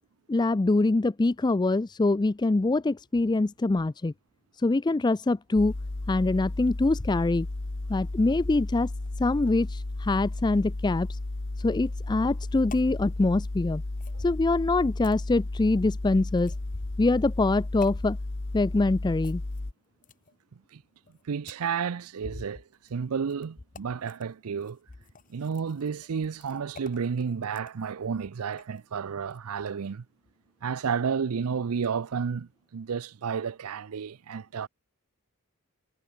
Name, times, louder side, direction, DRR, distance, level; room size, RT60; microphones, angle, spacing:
voice 1, 0.3-4.1 4.6-5.7 6.1-7.5 7.9-8.9 9.2-11.2 11.6-13.8 14.2-16.5 17.0-18.2 18.5-19.4, left 2 dB, 20° left, 0.4 m, -24 dB
sound 1, 5.6-19.7, left 2 dB, 55° left, 1.2 m, -34 dB
sound 2, 12.7-12.9 14.0-14.2 15.0-15.2 16.4-16.8 17.8-18.0 19.2-20.4 21.1-21.7 22.7-22.9 23.3-23.5 23.7-24.3 24.6-28.8 29.2-29.4, left 5 dB, 35° left, 1.7 m, -50 dB
voice 2, 21.3-22.6 22.9-24.8 25.3-30.0 30.6-34.7, right 6 dB, 75° right, 0.5 m, -31 dB
head